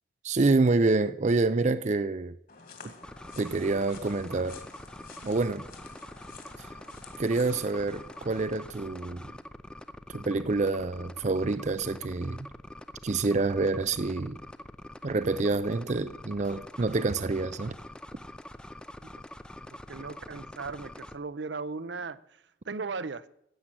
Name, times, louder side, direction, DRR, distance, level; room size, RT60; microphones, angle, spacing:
voice 1, 0.2-2.3 2.8-2.9 3.4-4.6 5.2-5.6 7.2-9.3 10.1-12.5 13.0-14.4 15.0-17.7, right 3 dB, 40° right, 0.5 m, -27 dB
sound 1, 2.5-8.5, left 4 dB, 50° left, 2.3 m, -50 dB
sound 2, 3.0-21.2, left 1 dB, 5° left, 0.5 m, -45 dB
voice 2, 19.7-22.2 22.7-23.3, right 4 dB, 75° right, 0.7 m, -37 dB
16.0 x 8.7 x 7.7 m
head